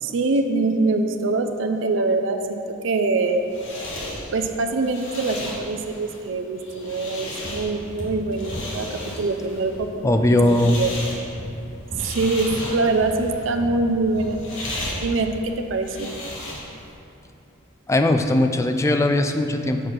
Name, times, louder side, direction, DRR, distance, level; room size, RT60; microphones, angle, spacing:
voice 1, 0.0-3.4 4.3-10.9 12.0-14.4 15.0-16.1, right 3 dB, 65° right, 5 dB, 0.5 m, -24 dB
sound 1, 3.1-16.9, left 1 dB, 70° left, 1.3 m, -35 dB
sound 2, 7.4-8.2 8.5-9.3 9.6-9.9 10.2-10.4 10.8-11.1 11.4-11.7 11.9-12.2 12.5-13.3 13.6-13.9 14.2-14.5, equal, 30° left, 1.7 m, -36 dB
voice 2, 10.0-10.8 17.9-19.8, left 1 dB, 15° left, 6 dB, 0.3 m, -19 dB
6.6 x 4.7 x 5.8 m, 2.9 s
head